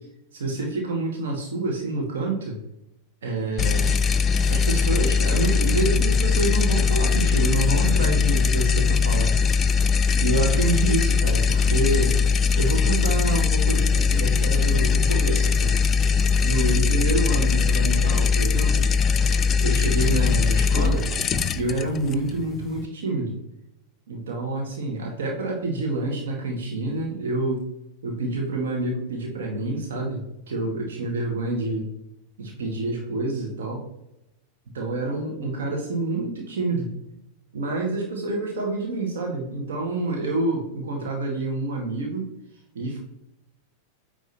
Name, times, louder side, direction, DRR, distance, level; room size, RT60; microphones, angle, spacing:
voice 1, 0.3-2.6 3.2-4.0 4.5-9.3 10.2-12.1 12.6-15.8 16.4-18.9 19.6-21.1 21.5-23.4 24.1-27.6 28.0-31.9 32.4-33.8 34.7-36.9 37.5-42.3 42.7-43.0, right 2 dB, 60° right, 1 dB, 2.1 m, -27 dB
sound 1, 3.6-22.9, left 5 dB, 25° left, 0.4 m, -21 dB
9.5 x 3.7 x 4.2 m, 0.84 s
figure-of-eight pair, 90°, 0 cm